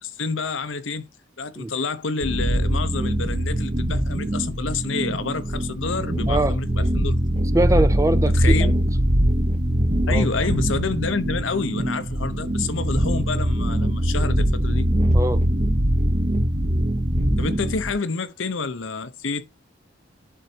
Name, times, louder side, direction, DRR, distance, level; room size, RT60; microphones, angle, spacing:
voice 1, 0.0-1.1 1.4-7.2 8.3-8.7 10.1-14.9 17.4-19.4, left 4 dB, 75° left, 0.8 m, -28 dB
sound 1, 2.2-17.9, equal, 35° right, 0.9 m, -22 dB
voice 2, 7.5-8.7 10.1-10.3 15.1-15.4, right 2 dB, 15° right, 0.4 m, -22 dB
Keyboard (musical), 10.4-14.0, right 10 dB, 75° right, 1.0 m, -44 dB
11.0 x 4.0 x 2.7 m
head